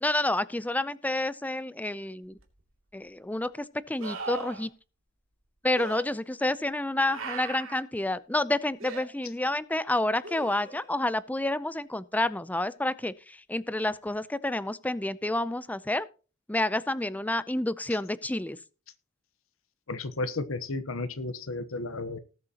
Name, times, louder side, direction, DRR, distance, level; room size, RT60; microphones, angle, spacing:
voice 1, 0.0-2.4 2.9-4.7 5.6-16.1 16.5-18.6, left 1 dB, 10° left, 0.5 m, -29 dB
sound 1, 2.4-2.5 4.0-4.7 5.8-6.0 7.1-7.8 8.8-9.1 10.2-10.9 14.1-14.2, right 4 dB, 70° right, 2.6 m, -38 dB
voice 2, 19.9-22.2, left 2 dB, 75° left, 1.0 m, -33 dB
19.0 x 7.7 x 2.9 m
head